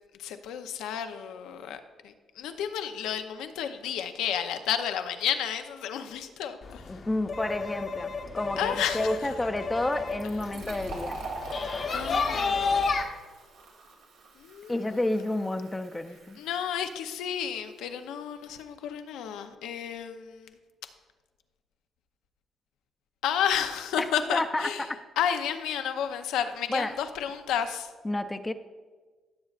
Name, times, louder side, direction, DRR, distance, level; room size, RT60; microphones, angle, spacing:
voice 1, 0.2-6.8 8.6-9.2 11.9-12.9 14.4-14.8 16.4-20.5 23.2-24.8 25.2-27.9, left 9 dB, 90° left, 8 dB, 0.6 m, -31 dB
sound 1, 6.6-13.0, left 4 dB, 50° left, 0.9 m, -31 dB
voice 2, 6.9-11.2 14.7-16.4 24.0-25.0 26.7-26.9 28.0-28.5, left 1 dB, 15° left, 8 dB, 0.5 m, -30 dB
Fill (with liquid), 10.1-17.4, right 3 dB, 90° right, 1.5 m, -44 dB
15.5 x 7.2 x 2.4 m, 1.4 s
cardioid pair, 90°, 0 cm